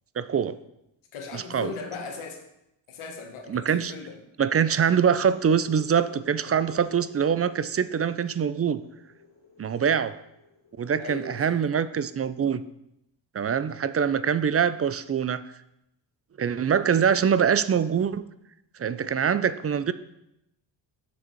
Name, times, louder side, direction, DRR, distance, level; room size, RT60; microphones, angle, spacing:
voice 1, 0.2-0.6 1.3-1.7 3.5-3.9 4.4-8.8 9.6-10.1 10.8-12.6 13.3-15.4 16.4-18.2 18.8-19.9, right 7 dB, 30° right, 14 dB, 0.4 m, -24 dB
voice 2, 1.1-2.4 2.9-4.2 11.0-11.6, left 4 dB, 90° left, 3 dB, 1.4 m, -38 dB
sound 1, 4.8-12.4, left 4 dB, 60° left, 2.6 m, -52 dB
6.8 x 6.4 x 4.5 m, 0.83 s
cardioid pair, 65°, 48 cm